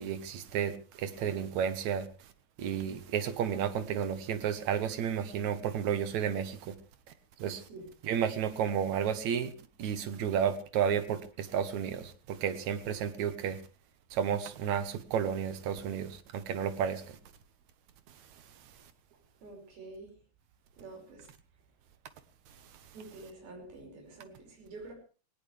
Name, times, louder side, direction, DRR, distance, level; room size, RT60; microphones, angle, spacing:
voice 1, 0.0-2.1 2.6-6.7 7.4-7.6 8.0-9.5 9.8-13.6 14.1-17.0, right 8 dB, 60° right, 2.3 m, -32 dB
voice 2, 19.4-20.1 20.8-21.3 22.9-24.9, right 2 dB, 85° right, 7.6 m, -47 dB
19.0 x 19.0 x 3.4 m
omnidirectional pair, 4.2 m